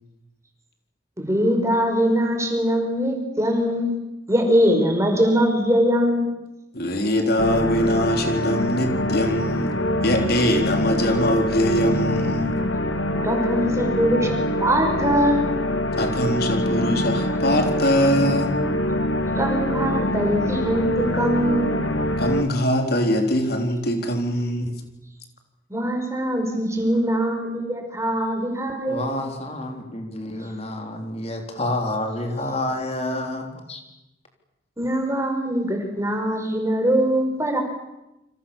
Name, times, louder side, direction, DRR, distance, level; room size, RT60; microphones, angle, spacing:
voice 1, 1.2-3.9 4.3-6.3 13.2-15.5 19.4-21.7 25.7-29.0 34.8-37.6, equal, 15° right, 4 dB, 5.2 m, -22 dB
voice 2, 6.7-9.7 10.0-12.6 16.0-18.5 22.2-24.7, equal, 55° left, 4 dB, 3.7 m, -22 dB
sound 1, 7.4-22.4, left 1 dB, 90° left, 2.4 m, -24 dB
voice 3, 28.9-33.8, left 1 dB, 35° left, 3 dB, 4.1 m, -29 dB
29.0 x 26.5 x 7.2 m, 0.94 s
head